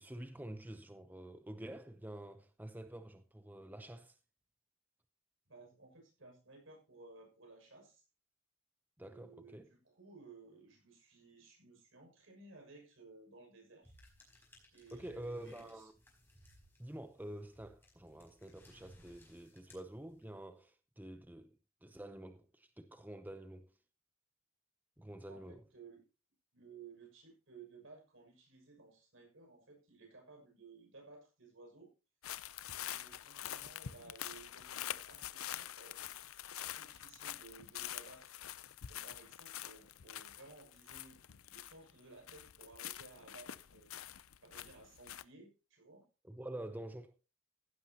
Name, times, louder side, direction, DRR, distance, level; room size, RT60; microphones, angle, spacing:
voice 1, 0.0-4.2 9.0-9.7 14.9-15.9 16.8-21.5 21.8-23.7 25.0-25.6 46.2-47.2, right 1 dB, 10° right, 0.7 m, -48 dB
voice 2, 5.5-8.0 9.0-13.9 14.7-15.9 25.2-26.0 26.5-31.9 32.8-38.3 38.8-41.2 41.5-43.9 44.4-46.1, right 3 dB, 65° right, 6.4 m, -58 dB
sound 1, 13.8-20.5, left 1 dB, 10° left, 5.0 m, -63 dB
sound 2, 32.2-42.0 42.3-45.2, left 11 dB, 85° left, 0.6 m, -46 dB
15.5 x 11.5 x 2.9 m
head